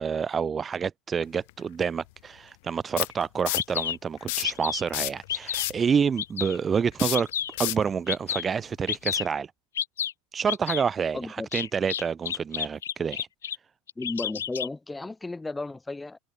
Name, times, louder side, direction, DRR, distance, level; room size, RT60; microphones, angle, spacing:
voice 1, 0.0-7.3 7.6-9.5 10.3-13.3, right 6 dB, 25° right, 0.5 m, -28 dB
sound 1, 1.5-1.6 3.0-3.8 4.2-4.6 4.9-5.9 6.9-7.9 9.1-9.2, left 23 dB, 60° left, 0.3 m, -30 dB
Bird vocalization bird call bird song, 3.1-3.2 3.6-4.0 4.4-4.9 5.3-5.7 6.2-6.6 7.1-7.6 8.1-8.5 8.9-9.3 9.8-10.1 10.5-10.8 11.5-13.6 13.9-14.7, left 9 dB, 80° left, 0.8 m, -30 dB
voice 2, 11.1-11.5 14.0-16.2, left 2 dB, 10° left, 6.0 m, -34 dB
hypercardioid pair, 80°, 0 cm